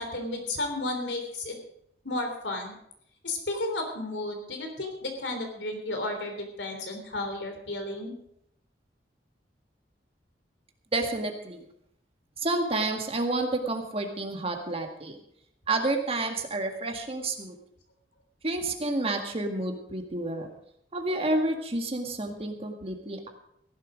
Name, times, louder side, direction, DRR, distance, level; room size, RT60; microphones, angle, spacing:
voice 1, 0.0-1.6 2.0-2.7 3.2-8.1, left 2 dB, 90° left, 4 dB, 3.4 m, -33 dB
voice 2, 10.9-11.7 12.4-15.2 15.7-17.6 18.4-20.5 20.9-23.3, right 2 dB, 35° right, 4 dB, 1.8 m, -30 dB
15.5 x 11.5 x 5.1 m, 0.75 s
head